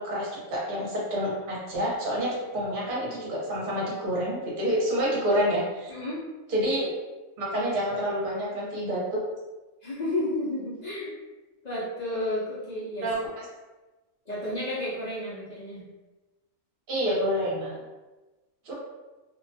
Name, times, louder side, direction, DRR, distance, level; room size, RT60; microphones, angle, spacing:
voice 1, 0.0-5.9 6.5-6.9 7.4-9.2 13.0-13.1 16.9-17.8 18.6-18.7, equal, 45° right, -5 dB, 0.9 m, -28 dB
voice 2, 5.9-6.2 9.8-11.1 11.6-13.1 14.3-15.8, left 1 dB, 55° left, -8 dB, 0.5 m, -31 dB
2.5 x 2.2 x 2.7 m, 1.2 s
omnidirectional pair, 1.5 m